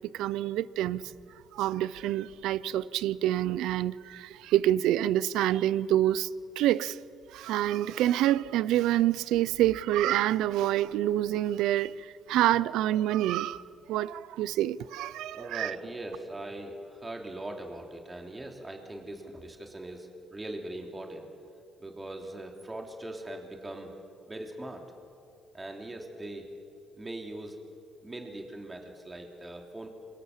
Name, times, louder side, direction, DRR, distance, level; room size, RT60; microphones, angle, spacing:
voice 1, 0.1-1.0 1.5-6.3 6.6-7.0 7.3-11.9 12.3-13.6 13.9-15.7, right 13 dB, 90° right, 0.6 m, -27 dB
voice 2, 15.3-21.3 21.8-23.9 24.3-24.8 25.5-26.5 27.0-27.6 28.0-29.9, right 1 dB, 20° right, 3.4 m, -41 dB
27.0 x 23.5 x 7.5 m
cardioid pair, 85°, 0 cm